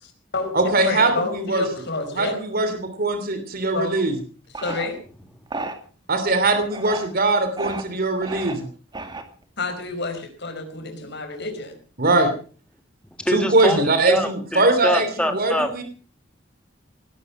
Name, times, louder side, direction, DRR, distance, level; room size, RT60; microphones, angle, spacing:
voice 1, 0.0-2.4 3.7-4.0 4.5-5.0 9.6-11.8 13.6-13.9, left 3 dB, 60° left, 6 dB, 4.9 m, -29 dB
voice 2, 0.5-1.6 2.1-4.1 6.1-8.7 12.0-12.3 13.3-15.8, right 2 dB, 50° right, 8 dB, 3.0 m, -21 dB
sound 1, 4.5-4.9 5.5-5.8 6.6-7.1 7.6-7.8 8.2-8.5 8.9-9.4, right 3 dB, 25° right, 2.3 m, -32 dB
voice 3, 13.2-13.8 14.1-15.8, equal, 5° left, 6 dB, 2.2 m, -24 dB
19.0 x 12.0 x 6.0 m, 0.40 s
head